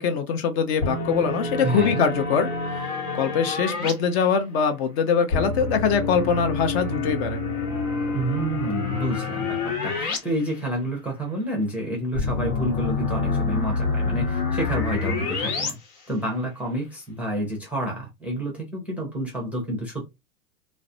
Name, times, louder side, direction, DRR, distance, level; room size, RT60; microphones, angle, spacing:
voice 1, 0.0-7.4, left 6 dB, 45° left, 0.5 m, -23 dB
sound 1, 0.8-3.9 5.3-10.2 10.5-10.6 12.2-15.7, left 4 dB, 80° left, 1.1 m, -27 dB
voice 2, 1.6-2.0 8.1-15.8 16.1-20.1, right 1 dB, 5° right, 0.4 m, -29 dB
2.3 x 2.0 x 2.6 m
hypercardioid pair, 115°, 44 cm